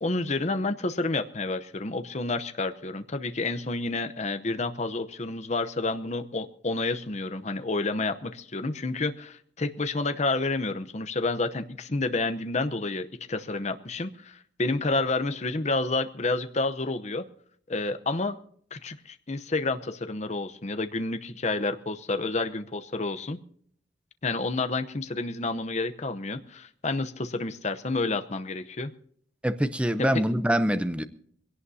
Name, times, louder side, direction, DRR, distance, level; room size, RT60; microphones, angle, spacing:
voice 1, 0.0-17.2 17.7-18.4 18.7-23.4 24.2-28.9, left 3 dB, 35° left, 0.8 m, -29 dB
voice 2, 29.4-31.0, equal, 5° right, 0.7 m, -24 dB
22.5 x 17.5 x 2.8 m
head